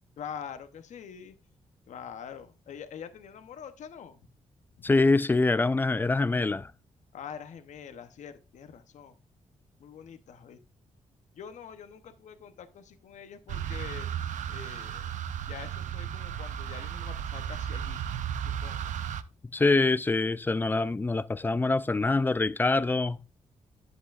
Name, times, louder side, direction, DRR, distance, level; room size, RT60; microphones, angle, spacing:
voice 1, 0.2-1.3 1.9-4.2 4.7-4.9 7.1-9.2 9.8-10.6 11.3-14.1 14.5-15.2 15.4-18.0 18.4-18.9, left 7 dB, 75° left, 0.8 m, -45 dB
voice 2, 4.8-6.7 19.5-23.2, left 3 dB, 15° left, 0.4 m, -25 dB
sound 1, 13.5-19.2, right 9 dB, 85° right, 0.5 m, -34 dB
10.5 x 8.1 x 2.5 m
cardioid pair, 95°, 12 cm